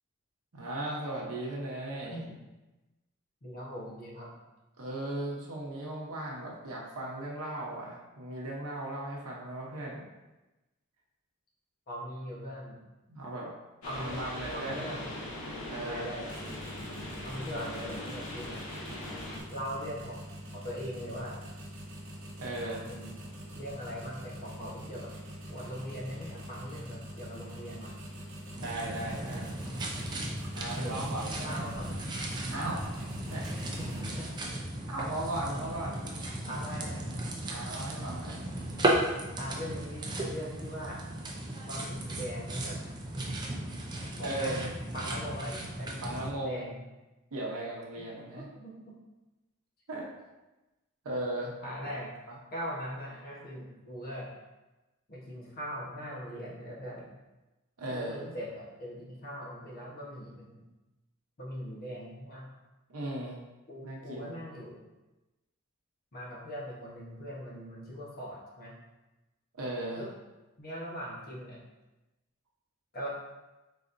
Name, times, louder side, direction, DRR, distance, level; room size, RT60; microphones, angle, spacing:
voice 1, 0.5-2.2 4.8-10.0 13.1-13.5 13.9-14.9 15.7-16.1 22.4-22.8 28.6-29.6 30.5-31.6 32.5-32.8 33.3-33.5 34.9-36.0 37.5-38.4 39.5-39.8 44.2-44.6 46.0-46.6 47.3-48.5 49.9-50.1 51.0-51.6 52.3-52.4 57.8-58.2 62.9-63.4 63.8-64.4 69.5-70.1, right 1 dB, 85° right, -4 dB, 0.8 m, -37 dB
voice 2, 3.4-4.3 11.9-12.8 13.8-14.2 14.5-15.1 15.8-16.3 17.2-18.7 19.5-20.3 20.5-21.4 22.6-23.1 23.5-25.1 25.5-27.9 30.7-32.0 33.6-34.3 36.4-37.2 39.4-41.0 41.7-42.8 44.1-44.6 44.9-46.8 48.1-48.9 51.6-52.1 52.5-54.3 55.1-57.1 57.9-60.6 61.4-62.5 63.7-64.8 66.1-68.7 70.0-70.1 70.6-71.6 72.9-73.1, equal, 45° left, -4 dB, 1.0 m, -40 dB
sound 1, 13.8-19.4, left 1 dB, 90° left, 0.9 m, -40 dB
sound 2, 16.2-34.6, equal, 60° right, 1.2 m, -44 dB
sound 3, 28.6-46.3, right 1 dB, 20° right, 0.5 m, -36 dB
4.1 x 4.1 x 2.5 m, 1.1 s
head